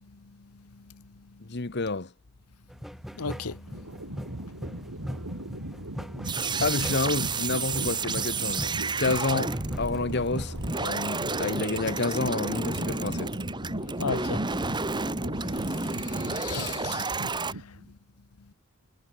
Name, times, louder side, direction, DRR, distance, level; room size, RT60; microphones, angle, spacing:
voice 1, 1.4-2.1 6.6-8.7 9.0-13.3, left 3 dB, 50° left, 1.1 m, -29 dB
sound 1, 2.7-10.9, equal, ahead, 1.5 m, -40 dB
voice 2, 3.1-4.0 14.0-14.9 15.4-17.8, left 5 dB, 85° left, 1.0 m, -37 dB
sound 2, 3.7-17.9, right 1 dB, 85° right, 6.4 m, -39 dB
sound 3, 6.2-17.5, right 3 dB, 20° right, 1.6 m, -31 dB
head